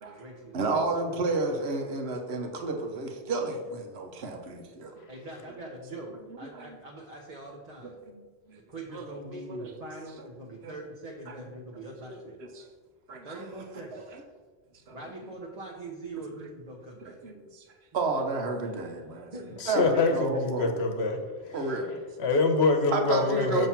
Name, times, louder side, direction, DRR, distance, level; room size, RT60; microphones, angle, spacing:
voice 1, 0.0-1.2 5.1-8.0 8.5-12.4 13.2-14.0 14.9-17.2 17.9-18.0 19.3-20.2, right 2 dB, 40° right, -1 dB, 0.8 m, -43 dB
voice 2, 0.5-4.9 6.5-6.7 8.1-8.2 8.5-8.6 8.9-9.0 9.3-9.7 10.6-10.7 12.4-12.6 13.1-13.3 13.9-14.0 14.9-15.0 17.2-17.6 17.9-19.3 19.7-20.7 21.5-22.0 22.9-23.7, right 3 dB, 75° right, 4 dB, 1.1 m, -31 dB
voice 3, 19.6-21.6 22.2-23.7, left 3 dB, 75° left, 5 dB, 1.1 m, -25 dB
7.1 x 3.0 x 5.7 m, 1.4 s
omnidirectional pair, 1.1 m